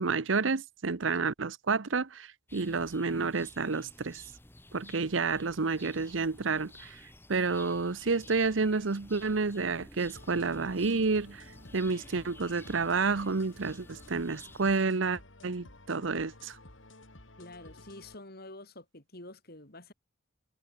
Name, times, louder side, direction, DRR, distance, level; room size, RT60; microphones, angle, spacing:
voice 1, 0.0-4.2 4.7-7.0 7.3-11.4 11.7-16.6, right 4 dB, 90° right, 0.9 m, -30 dB
sound 1, 2.5-14.7, left 1 dB, 10° left, 2.5 m, -53 dB
sound 2, 10.2-18.2, left 2 dB, 90° left, 4.3 m, -53 dB
voice 2, 17.4-19.9, left 2 dB, 55° left, 6.7 m, -48 dB
head